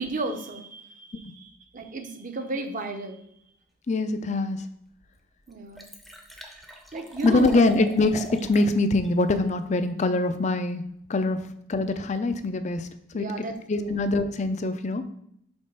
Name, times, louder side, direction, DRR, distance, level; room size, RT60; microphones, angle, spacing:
voice 1, 0.0-3.2 5.5-5.9 6.9-7.6 13.1-14.0, right 2 dB, 40° right, 6 dB, 0.7 m, -34 dB
voice 2, 3.9-4.7 7.2-10.8 11.1-12.9 13.1-13.3 13.7-15.0, left 2 dB, 35° left, 10 dB, 0.4 m, -24 dB
Liquid, 4.6-4.7 5.1-5.2 5.4-8.7 9.0-9.1, left 1 dB, ahead, 0.6 m, -41 dB
5.3 x 3.9 x 5.4 m, 0.70 s
head